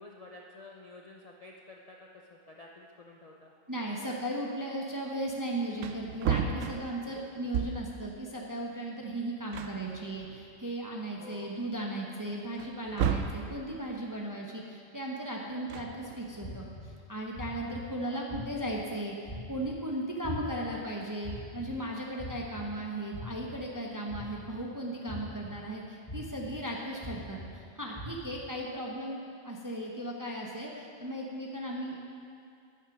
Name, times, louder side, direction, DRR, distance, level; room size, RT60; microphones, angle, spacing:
voice 1, 0.0-3.5 11.1-11.6 17.7-18.3, left 2 dB, 45° left, -1 dB, 0.5 m, -51 dB
voice 2, 3.7-32.0, right 1 dB, 20° right, -2 dB, 0.7 m, -36 dB
Wood, 5.3-5.4 5.7-8.0 9.1-9.2 9.5-10.7 11.2-11.3 12.6-13.5 15.5-16.4, right 7 dB, 75° right, 0.9 m, -33 dB
sound 1, 15.7-15.8 16.4-16.8 17.3-17.8 18.3-18.7 19.2-19.7 20.2-20.7 21.2-21.7 22.2-22.6 23.1-23.5 24.1-24.5 25.1-25.5 26.1-26.5 27.0-27.5 27.9-28.3, left 1 dB, 20° left, 1.4 m, -41 dB
9.2 x 7.0 x 6.0 m, 2.4 s
omnidirectional pair, 1.3 m